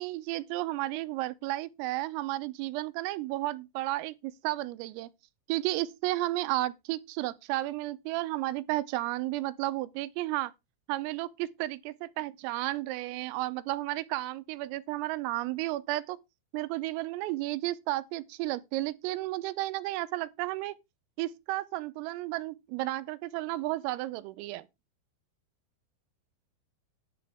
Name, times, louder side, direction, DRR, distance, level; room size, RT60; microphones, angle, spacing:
voice 1, 0.0-5.1 5.5-10.5 10.9-16.2 16.5-20.8 21.2-24.7, right 17 dB, 85° right, 3.4 m, -33 dB
10.5 x 10.0 x 3.4 m
omnidirectional pair, 5.9 m